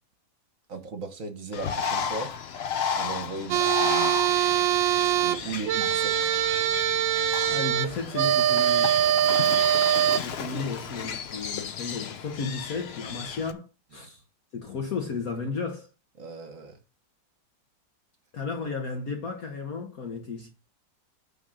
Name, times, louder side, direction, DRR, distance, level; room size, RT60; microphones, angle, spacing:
voice 1, 0.7-2.3 2.9-4.2 5.0-6.3 9.2-9.6 16.2-16.8, right 4 dB, 50° right, 1.4 m, -37 dB
Bird, 1.5-13.5, left 7 dB, 70° left, 0.6 m, -34 dB
sound 1, 3.5-10.2, right 11 dB, 85° right, 1.3 m, -23 dB
voice 2, 7.5-9.0 10.2-14.2 14.5-15.9 18.3-20.5, left 4 dB, 55° left, 1.5 m, -34 dB
9.4 x 3.9 x 6.3 m
omnidirectional pair, 2.0 m